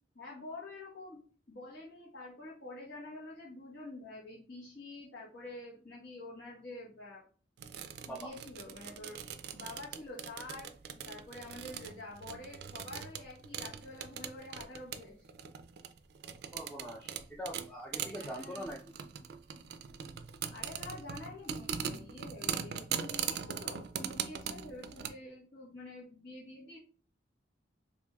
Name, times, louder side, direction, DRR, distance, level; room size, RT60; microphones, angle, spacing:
voice 1, 0.1-1.2 1.5-7.2 8.0-9.2 9.5-10.7 11.1-15.3 18.1-18.7 20.5-26.8, left 2 dB, 80° left, -8 dB, 1.1 m, -47 dB
sound 1, 7.6-25.1, right 8 dB, 65° right, 0.3 m, -41 dB
voice 2, 16.5-18.8, equal, 10° left, -2 dB, 0.4 m, -43 dB
4.5 x 2.5 x 2.3 m, 0.41 s
head